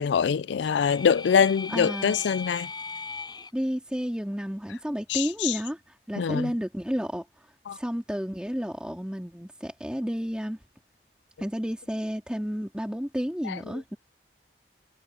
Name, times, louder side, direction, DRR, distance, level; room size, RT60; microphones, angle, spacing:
voice 1, 0.0-2.7 5.1-5.5 6.2-6.5 7.7-7.8, left 7 dB, 85° left, 0.4 m, -24 dB
sound 1, 0.6-3.5, left 4 dB, 25° left, 5.1 m, -38 dB
voice 2, 1.7-2.1 3.5-7.3 7.7-10.6 11.4-14.0, equal, 5° right, 3.0 m, -31 dB
head